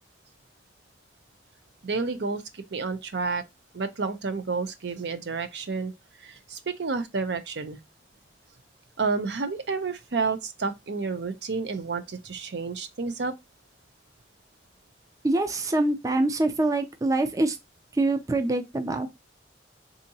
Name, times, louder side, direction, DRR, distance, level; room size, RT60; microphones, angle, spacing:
voice 1, 1.8-3.4 3.7-5.9 6.2-7.8 9.0-13.3, right 4 dB, 80° right, 0.6 m, -30 dB
voice 2, 15.2-17.6 17.9-19.1, right 2 dB, 20° right, 0.4 m, -25 dB
3.5 x 2.8 x 2.7 m
head